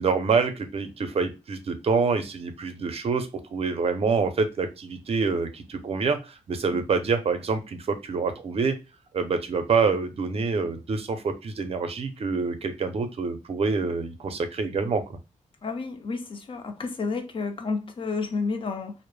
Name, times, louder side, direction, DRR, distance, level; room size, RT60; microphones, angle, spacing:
voice 1, 0.0-8.7 9.1-15.0, right 4 dB, 50° right, 0.5 m, -26 dB
voice 2, 15.6-18.9, left 4 dB, 40° left, 0.6 m, -30 dB
2.0 x 2.0 x 3.1 m
cardioid pair, 100°, 14 cm